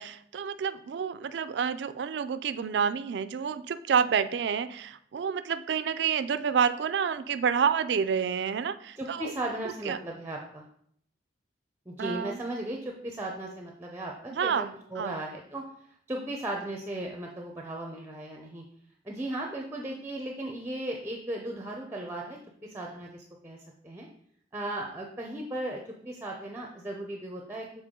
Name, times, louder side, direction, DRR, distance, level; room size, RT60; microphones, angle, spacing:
voice 1, 0.0-9.3 9.9-10.0 12.0-12.4 14.3-15.1, right 7 dB, 70° right, 12 dB, 0.3 m, -29 dB
voice 2, 9.0-10.7 11.9-15.6 16.1-18.6 19.0-23.6 23.8-24.1 24.5-27.7, right 1 dB, 15° right, 1 dB, 0.5 m, -36 dB
6.8 x 4.2 x 3.7 m, 0.67 s
head